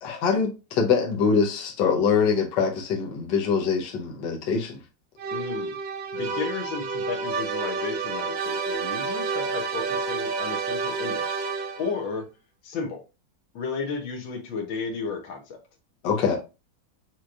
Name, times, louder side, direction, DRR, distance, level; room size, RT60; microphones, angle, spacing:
voice 1, 0.0-4.8 16.0-16.4, left 5 dB, 70° left, 1.6 m, -24 dB
sound 1, 5.2-12.0, right 4 dB, 75° right, 1.5 m, -29 dB
voice 2, 5.3-5.8 6.1-11.2 11.8-12.3 12.6-13.0 13.5-15.6, left 5 dB, 90° left, 1.8 m, -33 dB
6.2 x 3.0 x 2.5 m
omnidirectional pair, 2.0 m